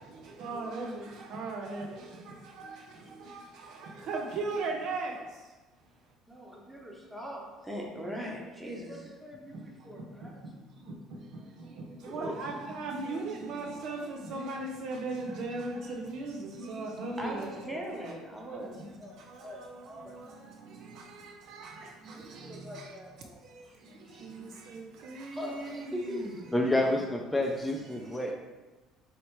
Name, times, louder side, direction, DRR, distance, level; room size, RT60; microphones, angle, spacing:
voice 1, 0.0-5.5 9.5-18.2 18.5-23.0 23.4-27.1 27.9-28.3, right 3 dB, 65° right, 0.6 m, -39 dB
voice 2, 6.3-10.4 12.1-12.4 17.2-20.2 22.1-23.7 24.0-24.4 25.3-26.4, equal, 10° right, 1.0 m, -41 dB
voice 3, 26.5-28.3, left 1 dB, 10° left, 0.5 m, -28 dB
4.2 x 3.1 x 3.1 m
hypercardioid pair, 70°, 0 cm